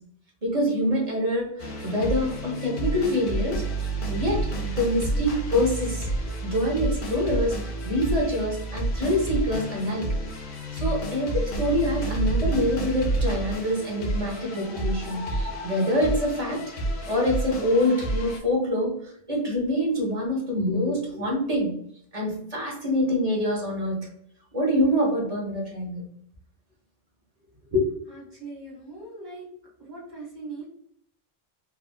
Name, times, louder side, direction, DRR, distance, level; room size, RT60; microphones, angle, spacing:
voice 1, 0.4-3.6 4.1-6.1 6.4-7.5 7.8-10.1 10.7-16.6 17.1-21.7 22.1-24.1 24.5-26.0 27.7-27.9, left 1 dB, 40° right, -2 dB, 1.0 m, -25 dB
sound 1, 1.6-18.4, right 2 dB, 60° left, 0.8 m, -30 dB
voice 2, 28.1-29.4 29.8-30.7, right 3 dB, 60° right, -3 dB, 1.5 m, -40 dB
3.4 x 2.4 x 2.2 m, 0.67 s
omnidirectional pair, 1.1 m